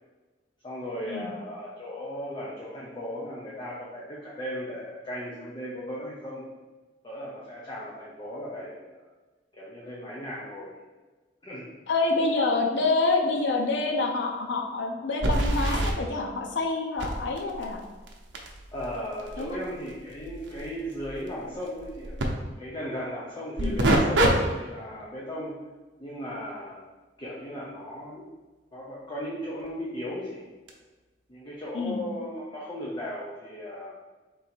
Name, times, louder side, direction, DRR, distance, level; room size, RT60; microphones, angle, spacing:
voice 1, 0.6-6.5 7.0-9.0 9.6-10.8 11.4-11.7 18.7-22.2 22.6-25.6 26.0-26.8 27.2-28.3 28.7-30.4 31.3-34.0, equal, 25° left, -6 dB, 0.6 m, -36 dB
voice 2, 11.9-17.8 19.4-19.6 23.6-23.8 31.7-32.0, left 3 dB, 80° left, 2 dB, 0.6 m, -27 dB
sound 1, 13.4-13.5 13.8-13.9 15.2-15.9 17.0-22.3 23.6-24.3 24.8-25.0 29.7-29.8 30.7-30.8, right 1 dB, 75° right, 0.7 m, -28 dB
3.8 x 2.8 x 4.2 m, 1.3 s
head